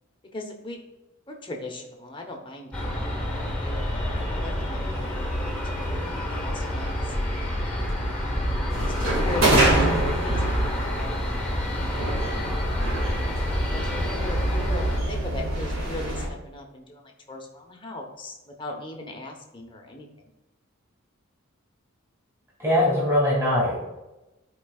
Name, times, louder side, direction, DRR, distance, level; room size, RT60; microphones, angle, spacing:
voice 1, 0.3-0.8 1.3-6.0 6.3-7.4 8.1-11.6 11.8-12.4 13.7-17.0 17.3-20.1, left 2 dB, 25° left, 2 dB, 1.0 m, -39 dB
Aircraft, 2.7-15.0, left 1 dB, 5° left, 1.4 m, -28 dB
sound 1, 8.7-16.3, right 1 dB, 70° right, 2.1 m, -26 dB
voice 2, 22.6-23.8, left 1 dB, 15° right, -7 dB, 2.4 m, -21 dB
13.5 x 4.7 x 2.4 m, 1.0 s
head